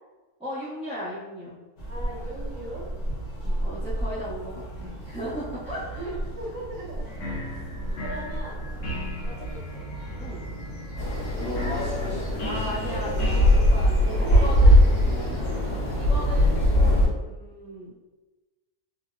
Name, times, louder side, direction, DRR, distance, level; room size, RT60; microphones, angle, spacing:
voice 1, 0.4-1.6 3.4-6.1 7.8-8.0 10.2-10.4 12.4-14.9 15.9-17.9, equal, 5° right, -14 dB, 0.6 m, -36 dB
sound 1, 1.8-17.1, right 1 dB, 45° left, 0.6 m, -35 dB
voice 2, 1.9-2.9 5.7-7.6 8.0-8.6 9.2-9.9 11.4-11.9 14.1-15.6 16.0-16.3, right 2 dB, 70° right, -3 dB, 0.9 m, -39 dB
sound 2, 7.0-15.1, equal, 70° left, 1.2 m, -38 dB
sound 3, 11.0-17.1, left 1 dB, 90° left, 2.0 m, -20 dB
4.1 x 2.0 x 2.4 m, 1.2 s
omnidirectional pair, 1.6 m